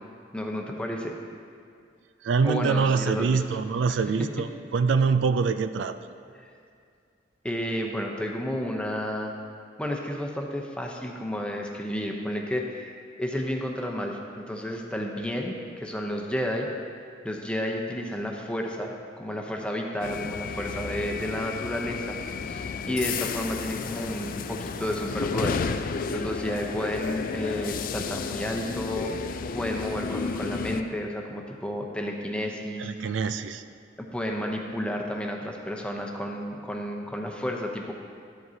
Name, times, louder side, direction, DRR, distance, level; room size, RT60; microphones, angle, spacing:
voice 1, 0.3-1.2 2.4-3.4 3.9-4.0 7.4-9.3 9.8-16.7 17.2-22.2 22.4-33.1 34.0-37.9, equal, 5° left, 1 dB, 0.7 m, -31 dB
voice 2, 2.2-6.0 32.8-33.6, right 5 dB, 80° right, 10 dB, 0.3 m, -25 dB
sound 1, 20.0-30.8, left 5 dB, 50° left, 0.3 m, -32 dB
12.0 x 7.7 x 2.8 m, 2.3 s
head